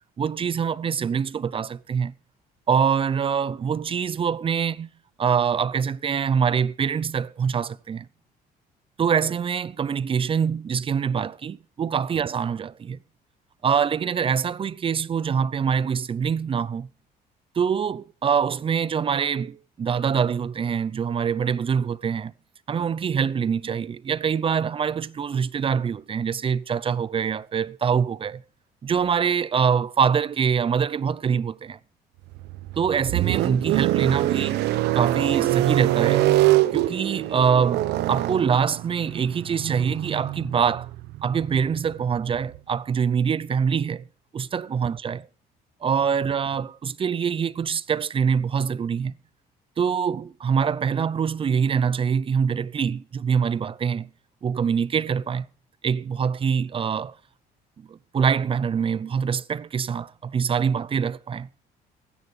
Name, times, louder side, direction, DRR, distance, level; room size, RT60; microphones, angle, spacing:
voice 1, 0.2-2.1 2.7-4.9 5.2-8.1 9.0-13.0 13.6-16.9 17.5-22.3 22.7-28.4 28.8-31.8 32.8-36.3 36.7-40.9 41.2-44.0 44.3-45.2 45.8-49.2 49.8-54.1 54.4-55.5 55.8-57.2 57.8-61.5, right 7 dB, 30° right, 0.6 m, -24 dB
sound 1, 32.3-42.6, right 16 dB, 80° right, 0.9 m, -24 dB
15.0 x 9.9 x 6.4 m
cardioid pair, 110°, 17 cm